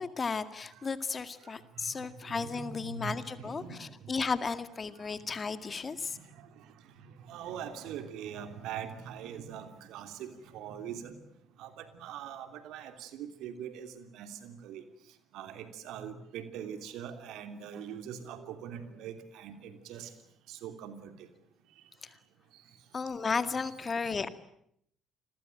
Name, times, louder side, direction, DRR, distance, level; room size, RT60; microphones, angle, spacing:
voice 1, 0.0-6.2 22.0-22.1 22.9-24.3, left 5 dB, 30° left, 12 dB, 2.0 m, -34 dB
voice 2, 2.3-4.1 6.1-6.5 7.0-11.2 11.6-14.8 15.3-20.1 20.5-21.1, right 8 dB, 60° right, 9 dB, 3.0 m, -42 dB
29.5 x 21.5 x 9.1 m, 0.71 s
figure-of-eight pair, 50°, 0 cm